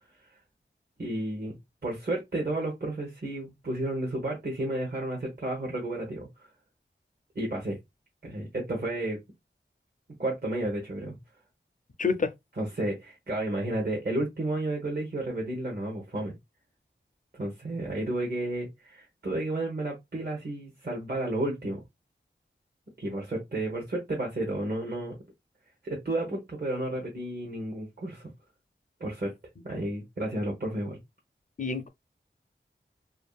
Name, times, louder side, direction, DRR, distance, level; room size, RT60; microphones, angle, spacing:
voice 1, 1.0-1.5 1.8-6.5 7.3-7.8 8.2-9.2 10.2-11.2 12.6-16.3 17.3-21.8 23.0-25.2 25.8-28.3 29.0-29.3 29.6-31.0, right 1 dB, 50° right, 0.9 m, -32 dB
voice 2, 12.0-12.3 31.6-31.9, left 4 dB, 40° left, 0.4 m, -27 dB
2.6 x 2.6 x 2.3 m
wide cardioid pair, 45°, 20 cm